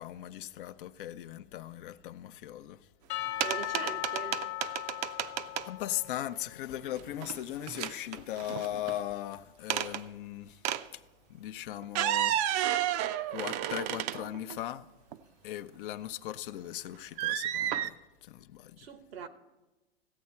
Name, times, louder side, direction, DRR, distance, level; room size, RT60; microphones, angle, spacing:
voice 1, 0.0-2.9 5.6-10.6 10.9-11.0 11.3-12.4 13.3-14.9 15.4-18.9, left 13 dB, 60° left, 0.6 m, -38 dB
Percussion / Church bell, 3.1-6.7, left 18 dB, 40° left, 1.1 m, -38 dB
sound 1, 3.4-5.7 7.0-7.4 7.7-9.0 9.7-10.0 10.6-10.9 11.8-14.6 15.1-15.2 17.2-17.9, right 12 dB, 45° right, 0.5 m, -31 dB
voice 2, 3.4-4.4 18.8-19.3, right 7 dB, 80° right, 1.0 m, -41 dB
15.5 x 8.6 x 4.3 m
hypercardioid pair, 110°, 30 cm